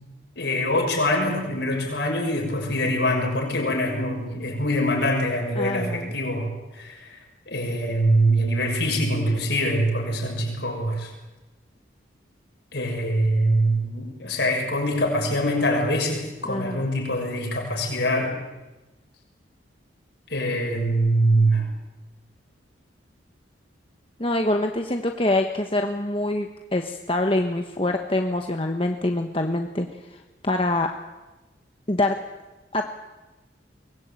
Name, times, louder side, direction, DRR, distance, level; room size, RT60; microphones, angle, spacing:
voice 1, 0.4-7.2 7.5-11.1 12.7-18.3 20.3-21.6, equal, 65° left, 1 dB, 6.7 m, -24 dB
voice 2, 5.6-6.1 16.4-16.8 24.2-30.9 31.9-32.2 32.7-32.9, left 1 dB, 30° left, 4 dB, 1.2 m, -25 dB
23.5 x 20.0 x 9.0 m, 1.1 s
head